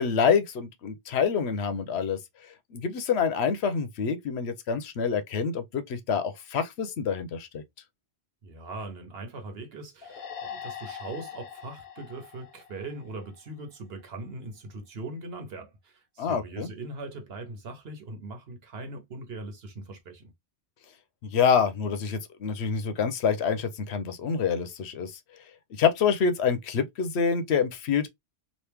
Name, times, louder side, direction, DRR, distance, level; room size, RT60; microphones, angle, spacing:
voice 1, 0.0-2.2 2.7-7.6 16.2-16.7 21.2-25.2 25.8-28.1, left 6 dB, 85° left, 0.9 m, -26 dB
voice 2, 8.4-20.3, right 2 dB, 70° right, 1.1 m, -40 dB
sound 1, 10.0-13.5, left 8 dB, 60° left, 0.9 m, -42 dB
3.1 x 2.5 x 3.3 m
omnidirectional pair, 1.1 m